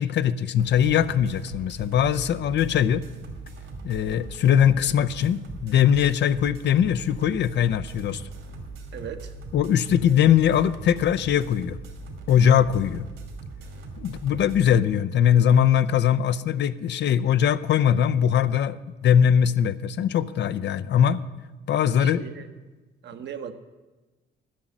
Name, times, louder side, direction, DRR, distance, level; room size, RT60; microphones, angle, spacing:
voice 1, 0.0-3.0 3.8-8.2 9.5-11.8 12.3-13.0 14.0-18.8 19.0-21.2 21.7-22.2, left 9 dB, 65° left, 14 dB, 0.5 m, -21 dB
sound 1, 0.6-14.7, right 3 dB, 80° right, 2.5 m, -40 dB
voice 2, 8.9-9.3 22.0-22.5 23.0-23.5, right 8 dB, 60° right, 8 dB, 1.0 m, -37 dB
11.5 x 6.1 x 8.9 m, 1.2 s
cardioid pair, 90°, 20 cm